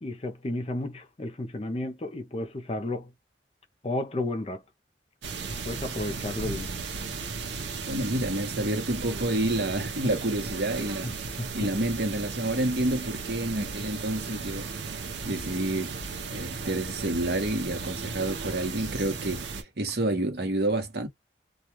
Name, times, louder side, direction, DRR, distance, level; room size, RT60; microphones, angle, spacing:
voice 1, 0.0-3.1 3.8-4.6 5.6-6.7 11.0-11.7, left 1 dB, 35° left, 0.5 m, -33 dB
sound 1, 5.2-19.6, right 4 dB, 90° right, 0.7 m, -35 dB
voice 2, 7.9-11.1 11.5-14.7 15.2-15.9 16.3-21.1, right 1 dB, 65° right, 1.0 m, -29 dB
2.3 x 2.3 x 2.9 m
head